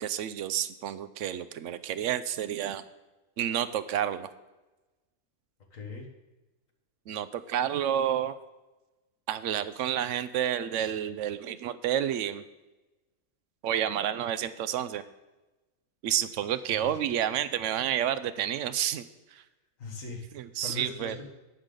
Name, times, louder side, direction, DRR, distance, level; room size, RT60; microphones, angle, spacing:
voice 1, 0.0-2.8 3.4-4.3 7.1-8.4 9.3-12.4 13.6-15.0 16.0-19.0 19.3-19.4 20.3-21.2, right 10 dB, 70° right, 14 dB, 0.9 m, -30 dB
voice 2, 5.7-6.1 16.7-16.9 19.8-20.3 20.6-21.3, left 3 dB, 80° left, 1 dB, 1.8 m, -40 dB
18.5 x 6.7 x 3.8 m, 1.1 s
omnidirectional pair, 1.4 m